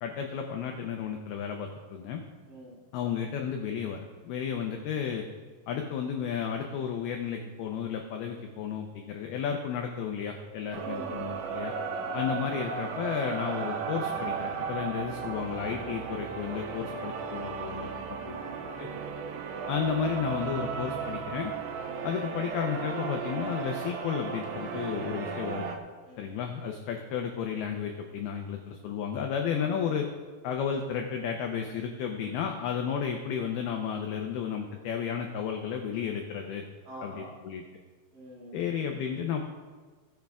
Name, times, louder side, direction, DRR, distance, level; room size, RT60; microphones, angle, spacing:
voice 1, 0.0-2.2 2.9-5.3 5.7-11.7 12.1-18.4 18.8-18.9 19.7-21.5 22.0-25.7 26.2-30.1 30.4-36.6 37.0-37.6 38.5-39.4, left 7 dB, 90° left, 3 dB, 2.2 m, -33 dB
voice 2, 2.5-2.8 10.7-11.5 18.2-19.0 26.0-26.3 29.5-29.7 36.9-37.3 38.1-38.7, right 1 dB, 50° right, -5 dB, 3.4 m, -46 dB
sound 1, 10.7-25.8, right 5 dB, 90° right, 2.1 m, -35 dB
18.0 x 6.3 x 3.5 m, 1.4 s
omnidirectional pair, 5.4 m